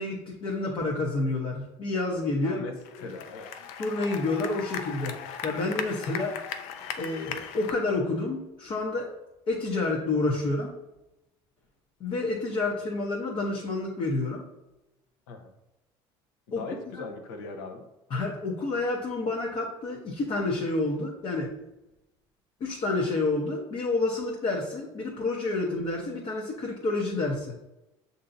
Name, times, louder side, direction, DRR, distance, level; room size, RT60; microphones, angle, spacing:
voice 1, 0.0-2.6 3.8-5.2 5.4-6.3 7.0-9.1 9.5-10.7 12.0-14.4 16.5-16.6 17.0-17.1 18.1-21.5 22.6-27.5, left 2 dB, 45° left, -1 dB, 0.8 m, -29 dB
voice 2, 2.4-3.5 15.3-15.5 16.5-17.8, left 3 dB, 90° left, 3 dB, 0.8 m, -39 dB
sound 1, 2.8-7.7, left 8 dB, 75° left, 0.4 m, -38 dB
6.7 x 2.7 x 2.6 m, 0.95 s
supercardioid pair, 100°, 12 cm